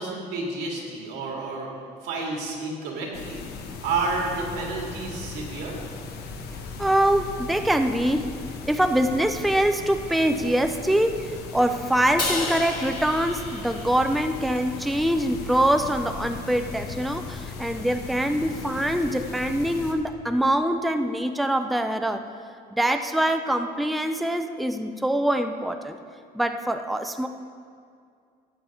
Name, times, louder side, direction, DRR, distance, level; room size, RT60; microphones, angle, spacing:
voice 1, 0.0-1.7 2.0-3.4 3.8-5.8, right 3 dB, 90° right, -1 dB, 2.3 m, -30 dB
sound 1, 3.1-19.9, left 4 dB, 70° left, 1.2 m, -38 dB
voice 2, 6.8-8.3 8.7-22.2 22.7-26.0 26.3-27.3, right 1 dB, ahead, 7 dB, 0.5 m, -24 dB
Crash cymbal, 12.2-14.6, left 3 dB, 25° left, 2.0 m, -32 dB
13.0 x 8.8 x 3.7 m, 2.3 s
cardioid pair, 110°, 17 cm